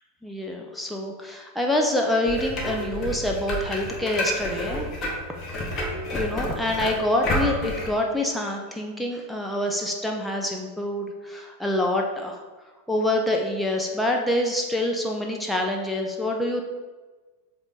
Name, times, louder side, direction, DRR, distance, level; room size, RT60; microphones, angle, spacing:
voice 1, 0.2-4.9 6.1-12.4 12.9-16.6, left 1 dB, ahead, 0 dB, 0.7 m, -26 dB
sound 1, 2.3-7.9, equal, 30° left, 1.4 m, -30 dB
7.9 x 3.5 x 4.1 m, 1.3 s
figure-of-eight pair, 90°, 0 cm